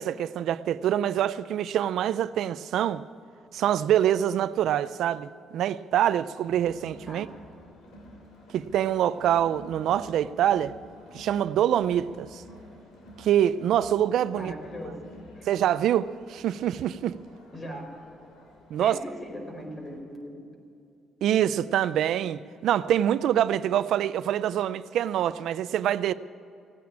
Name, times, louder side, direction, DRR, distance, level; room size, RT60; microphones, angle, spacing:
voice 1, 0.0-3.0 3.5-7.3 8.5-10.7 11.1-12.4 13.2-14.5 15.5-17.2 18.7-19.0 21.2-26.1, right 11 dB, 80° right, 0.4 m, -25 dB
Crowd, 6.4-20.0, equal, 85° left, 2.9 m, -50 dB
voice 2, 14.3-15.5 17.5-18.1 18.8-20.5, equal, 30° left, 4.5 m, -40 dB
17.0 x 9.4 x 8.7 m
cardioid pair, 90°, 0 cm